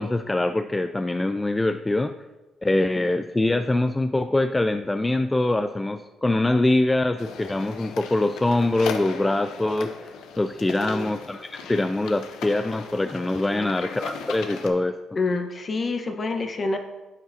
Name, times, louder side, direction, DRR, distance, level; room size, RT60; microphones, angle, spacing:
voice 1, 0.0-2.1 2.6-15.0, left 2 dB, 15° left, 9 dB, 0.3 m, -24 dB
sound 1, 7.2-14.7, left 6 dB, 85° left, 0.8 m, -38 dB
voice 2, 10.7-11.1 13.5-13.7 15.2-16.8, left 3 dB, 40° left, 5 dB, 1.1 m, -28 dB
10.5 x 7.7 x 2.7 m, 1.2 s
cardioid pair, 90°, 0 cm